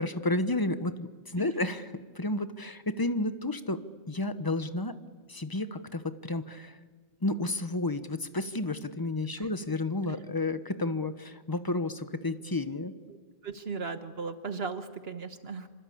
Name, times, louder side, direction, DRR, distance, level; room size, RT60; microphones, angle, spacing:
voice 1, 0.0-3.8 4.1-5.0 5.3-6.8 7.2-12.9, left 2 dB, 20° left, 11 dB, 1.1 m, -31 dB
voice 2, 13.4-15.7, right 4 dB, 60° right, 9 dB, 1.4 m, -37 dB
27.0 x 25.5 x 8.6 m, 1.5 s
omnidirectional pair, 1.2 m